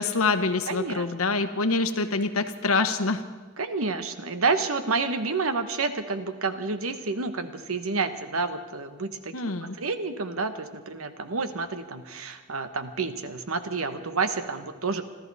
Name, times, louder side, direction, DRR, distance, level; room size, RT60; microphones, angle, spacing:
voice 1, 0.0-3.2 9.3-9.8, left 3 dB, 90° left, 9 dB, 1.1 m, -25 dB
voice 2, 0.7-1.0 3.6-9.4 9.8-15.1, right 4 dB, 80° right, 9 dB, 1.2 m, -29 dB
25.0 x 14.0 x 4.1 m, 1.4 s
head